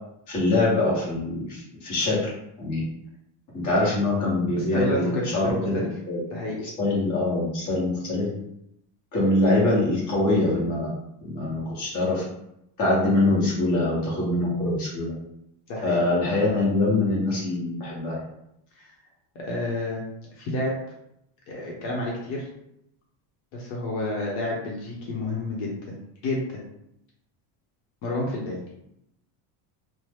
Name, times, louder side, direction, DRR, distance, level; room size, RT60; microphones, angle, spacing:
voice 1, 0.3-2.3 2.6-2.8 3.5-6.2 6.8-8.3 9.1-10.9 11.2-12.2 12.8-15.1 15.8-18.2, left 2 dB, 35° left, -5 dB, 1.0 m, -24 dB
voice 2, 4.6-5.9 6.3-6.6 15.7-16.0 18.8-18.9 19.3-20.0 20.4-20.7 21.5-22.5 23.5-26.6 28.0-28.6, left 1 dB, 65° left, -3 dB, 0.9 m, -30 dB
2.7 x 2.1 x 3.3 m, 0.79 s
cardioid pair, 180°, 50 cm